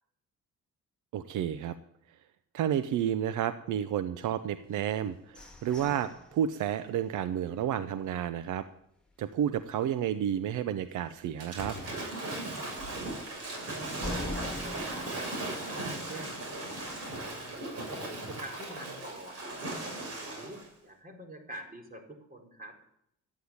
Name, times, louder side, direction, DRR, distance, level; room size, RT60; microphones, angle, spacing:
voice 1, 1.1-1.8 2.5-8.6 9.2-11.8, right 10 dB, 80° right, 12 dB, 0.8 m, -31 dB
sound 1, 4.7-8.6 9.1-9.2 9.5-9.9 10.3-10.4 10.9-11.0 14.0-16.7, left 1 dB, 5° left, 3.4 m, -44 dB
Waves surf / Splash splatter, 11.4-20.7, right 2 dB, 55° right, 6.9 m, -37 dB
voice 2, 13.6-16.4 17.3-19.5 20.1-22.8, right 1 dB, 30° right, 2 dB, 4.3 m, -46 dB
13.5 x 9.6 x 8.6 m, 0.74 s
cardioid pair, 90°, 30 cm